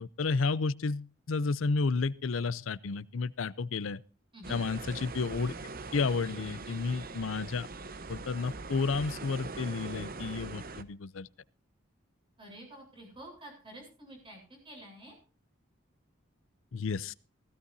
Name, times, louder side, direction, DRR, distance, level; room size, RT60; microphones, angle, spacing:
voice 1, 0.0-4.0 4.5-5.5 5.9-7.7 8.1-11.3 16.7-17.1, left 4 dB, 85° left, 0.6 m, -31 dB
sound 1, 4.4-10.8, right 3 dB, 50° right, 0.9 m, -42 dB
voice 2, 12.4-15.2, right 1 dB, 25° right, 7.8 m, -49 dB
16.5 x 16.0 x 2.7 m
head